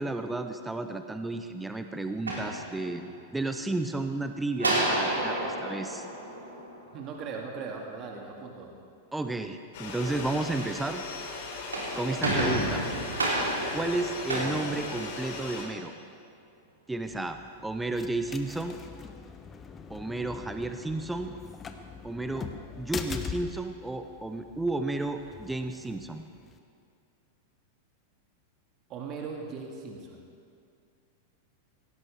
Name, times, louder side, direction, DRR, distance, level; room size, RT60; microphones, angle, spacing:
voice 1, 0.0-3.1 3.3-6.1 9.1-11.0 12.0-12.8 13.7-15.9 16.9-18.8 19.9-21.3 22.0-22.5 22.8-26.2, right 2 dB, 5° right, 7 dB, 0.7 m, -32 dB
sound 1, 2.1-3.3 4.6-7.1 11.5-15.6, right 1 dB, 80° right, 3.2 m, -31 dB
voice 2, 6.9-8.7 12.1-12.2 28.9-30.2, right 5 dB, 35° right, 1 dB, 2.1 m, -39 dB
sound 2, 9.7-15.6, left 3 dB, 55° left, 3.3 m, -38 dB
sound 3, 17.0-26.6, left 5 dB, 20° left, 0.9 m, -43 dB
17.5 x 17.0 x 3.6 m, 2.3 s
figure-of-eight pair, 90°, 0 cm